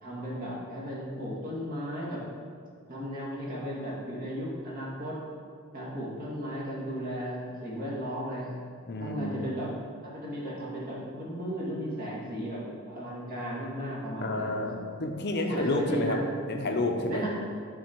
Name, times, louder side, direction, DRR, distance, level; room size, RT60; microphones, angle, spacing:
voice 1, 0.0-2.2 2.9-5.2 5.7-8.6 9.0-9.7 10.0-14.6 15.4-16.2 17.1-17.3, equal, 40° right, -6 dB, 2.0 m, -35 dB
voice 2, 8.8-9.3 14.2-16.2 16.5-17.2, left 2 dB, 50° left, 3 dB, 0.7 m, -30 dB
10.0 x 4.1 x 4.5 m, 2.2 s
head